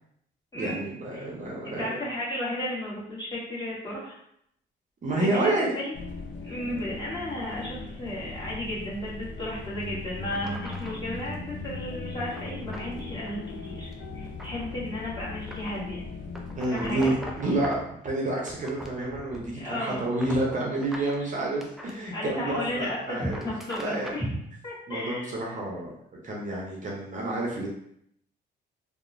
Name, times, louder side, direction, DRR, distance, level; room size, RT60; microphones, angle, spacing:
voice 1, 0.5-2.0 5.0-5.7 16.5-22.4 22.7-23.5 23.8-24.2 24.9-25.9 26.2-27.7, right 2 dB, 40° right, -3 dB, 0.6 m, -29 dB
voice 2, 1.6-4.2 5.2-5.9 6.4-16.0 16.7-17.1 19.5-20.1 22.1-24.3 24.6-25.3, left 1 dB, 20° left, -8 dB, 1.4 m, -34 dB
sound 1, 5.9-16.6, left 3 dB, 65° left, 0.5 m, -39 dB
sound 2, 9.6-9.7 10.3-11.1 12.3-12.9 13.3-13.5 13.9-14.8 15.5-15.8 16.3-17.9 18.4-19.6 19.9-22.0 23.1-24.3, equal, ahead, 0.4 m, -42 dB
2.8 x 2.1 x 2.5 m, 0.71 s
cardioid pair, 90°, 20 cm